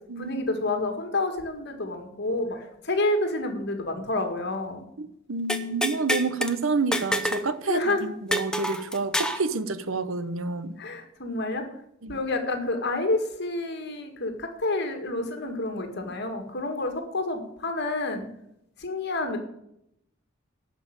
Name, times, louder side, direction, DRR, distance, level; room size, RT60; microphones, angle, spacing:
voice 1, 0.1-4.8 6.4-6.5 7.7-8.1 10.8-11.7 12.1-18.3 18.8-19.4, left 2 dB, 55° left, 5 dB, 2.0 m, -29 dB
voice 2, 5.0-10.8 12.0-12.2, right 3 dB, 75° right, 13 dB, 0.9 m, -29 dB
sound 1, 5.5-6.5 6.9-7.5 7.7-7.8 8.3-9.4, equal, 5° left, 0.8 m, -27 dB
11.5 x 5.7 x 8.8 m, 0.79 s
head